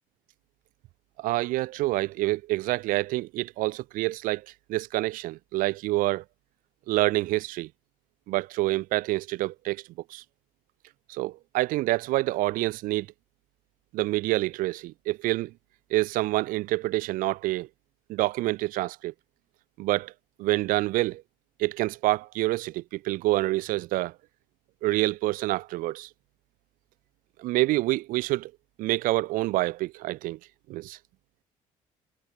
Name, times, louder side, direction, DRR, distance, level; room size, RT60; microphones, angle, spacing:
voice 1, 1.2-6.2 6.9-7.7 8.3-9.8 10.1-10.2 11.1-13.1 13.9-15.5 15.9-17.7 18.1-19.1 19.8-20.1 20.4-21.2 21.6-24.1 24.8-26.1 27.4-28.5 28.8-30.4 30.7-31.0, right 18 dB, 85° right, 0.8 m, -27 dB
cardioid pair, 150°, 14 cm